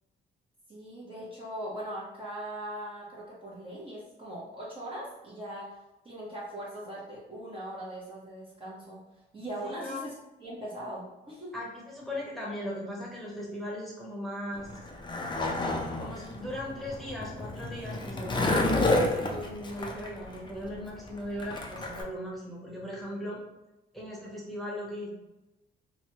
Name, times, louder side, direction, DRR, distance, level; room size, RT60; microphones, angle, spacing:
voice 1, 0.7-5.7 6.0-10.1 10.4-11.5, right 1 dB, 25° right, -6 dB, 0.7 m, -40 dB
voice 2, 9.6-10.0 11.5-14.7 16.0-18.8 19.3-23.4 23.9-25.1, left 1 dB, ahead, -5 dB, 1.0 m, -38 dB
Skateboard, 14.6-22.0, left 2 dB, 25° left, 0.4 m, -30 dB
3.0 x 2.1 x 2.8 m, 0.98 s
cardioid pair, 90°, 20 cm